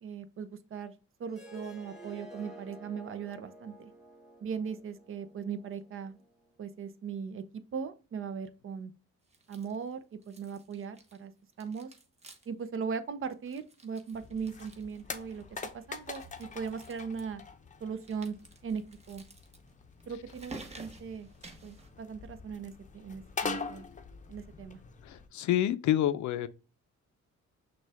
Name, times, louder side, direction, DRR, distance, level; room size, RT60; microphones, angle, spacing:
voice 1, 0.0-0.9 1.2-3.9 4.4-6.2 6.6-8.9 9.5-11.3 11.6-11.9 12.5-15.4 15.7-17.4 17.8-18.4 18.6-19.2 20.1-21.3 21.6-23.9 24.3-24.8, right 6 dB, 45° right, 0.6 m, -39 dB
Harp, 1.3-6.4, right 1 dB, ahead, 1.7 m, -51 dB
sound 1, 9.3-9.9 10.2-11.3 11.5-12.6 12.9-13.0 13.3-15.5 16.0-17.2 18.0-21.9, right 3 dB, 20° right, 0.9 m, -52 dB
sound 2, 14.1-25.3, left 4 dB, 25° left, 0.6 m, -44 dB
voice 2, 25.0-26.5, left 12 dB, 70° left, 0.5 m, -28 dB
6.1 x 2.3 x 3.4 m
cardioid pair, 90°, 30 cm